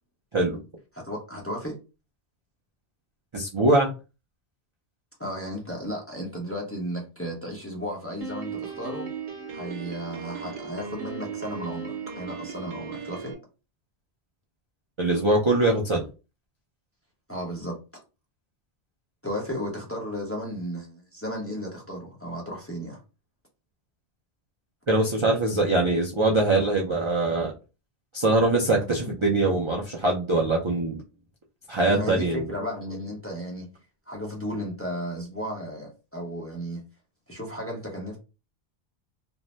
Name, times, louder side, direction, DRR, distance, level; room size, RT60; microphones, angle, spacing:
voice 1, 0.9-1.8 5.2-9.1 9.5-13.4 17.3-17.8 19.2-23.0 31.9-33.7 34.1-36.8 37.3-38.2, equal, 15° left, 0.6 m, -34 dB
voice 2, 3.3-3.9 15.0-16.1 24.9-27.5 28.1-31.0 31.7-32.5, right 2 dB, 45° right, 0.3 m, -23 dB
Piano, 8.2-13.3, right 5 dB, 65° right, 0.9 m, -36 dB
2.6 x 2.0 x 3.1 m
omnidirectional pair, 1.2 m